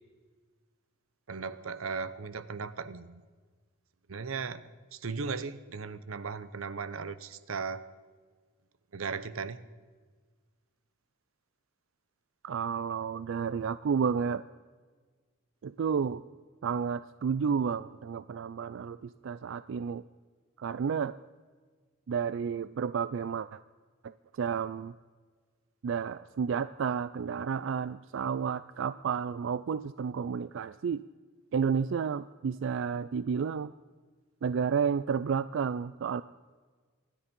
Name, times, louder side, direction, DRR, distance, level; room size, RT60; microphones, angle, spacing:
voice 1, 1.3-3.2 4.1-7.9 8.9-9.6, right 5 dB, 90° right, 15 dB, 0.8 m, -37 dB
voice 2, 12.4-14.4 15.6-16.2 16.6-20.0 20.6-21.2 22.1-23.6 24.0-25.0 25.8-31.0 31.5-33.7 34.4-36.2, right 6 dB, 65° right, 15 dB, 0.4 m, -31 dB
25.0 x 9.9 x 5.3 m, 1.5 s
head